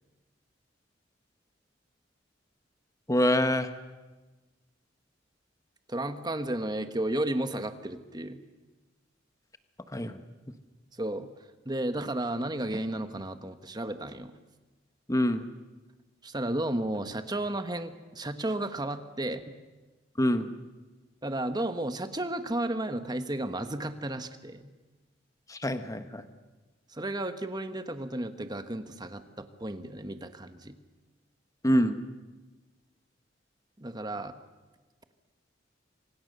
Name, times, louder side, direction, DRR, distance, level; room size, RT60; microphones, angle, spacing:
voice 1, 3.1-3.7 9.9-10.2 15.1-15.4 20.2-20.5 25.5-26.3 31.6-32.0, equal, 15° left, 9 dB, 1.3 m, -25 dB
voice 2, 5.9-8.4 10.9-11.3 11.6-14.3 16.2-19.4 21.2-24.7 26.9-30.8 33.8-34.3, right 1 dB, 20° right, 9 dB, 1.4 m, -33 dB
29.0 x 24.5 x 6.8 m, 1.2 s
head